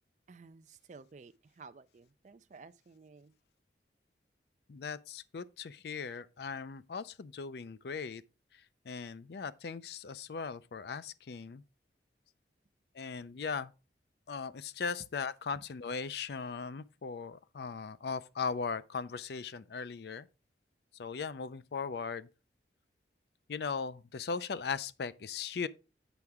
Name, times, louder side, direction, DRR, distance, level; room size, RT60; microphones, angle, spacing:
voice 1, 0.3-3.3, right 4 dB, 40° right, 0.4 m, -54 dB
voice 2, 4.7-8.2 8.9-11.6 12.9-13.7 14.3-20.3 20.9-22.3 23.5-25.7, left 5 dB, 65° left, 0.4 m, -38 dB
8.1 x 5.8 x 3.5 m
head